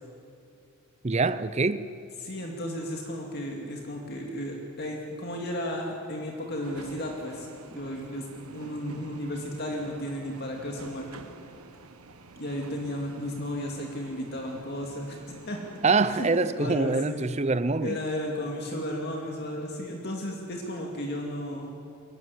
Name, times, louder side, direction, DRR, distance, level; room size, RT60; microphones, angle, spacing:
voice 1, 1.0-1.8 15.8-18.0, right 3 dB, 30° right, 0.5 m, -24 dB
voice 2, 2.2-11.2 12.4-15.6 16.1-16.3 16.6-17.2 17.8-21.7, left 1 dB, 45° left, 2.4 m, -34 dB
sound 1, 6.6-16.2, right 3 dB, 80° right, 1.3 m, -48 dB
22.5 x 15.5 x 9.9 m
head